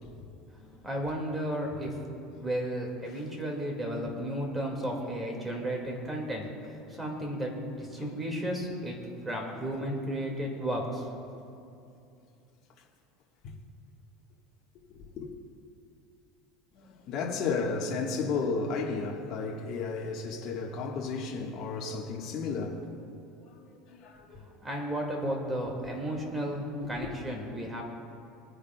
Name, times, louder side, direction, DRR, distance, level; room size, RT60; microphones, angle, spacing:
voice 1, 0.8-6.4 6.9-9.0 9.2-11.3 24.6-27.8, right 1 dB, 10° right, 2.0 m, -33 dB
voice 2, 14.9-15.3 16.7-22.8 23.5-24.4, left 4 dB, 45° left, 1.4 m, -33 dB
24.0 x 9.9 x 2.3 m
supercardioid pair, 145°, 0 cm